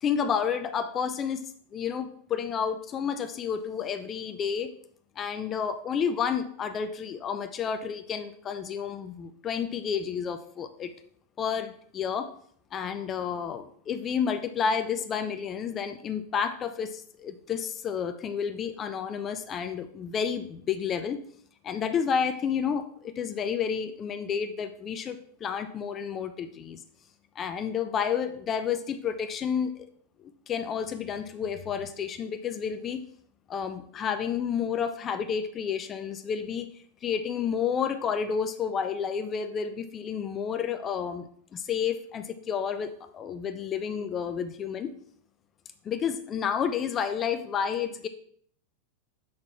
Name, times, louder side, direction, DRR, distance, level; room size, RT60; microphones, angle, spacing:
voice 1, 0.0-1.4 1.7-4.7 5.2-10.9 11.4-12.3 12.7-21.2 21.6-26.8 27.4-29.9 30.5-33.0 33.5-36.7 37.0-44.9 45.8-48.1, left 7 dB, 25° left, 9 dB, 0.5 m, -30 dB
6.3 x 3.7 x 5.7 m, 0.62 s
figure-of-eight pair, 90°, 0 cm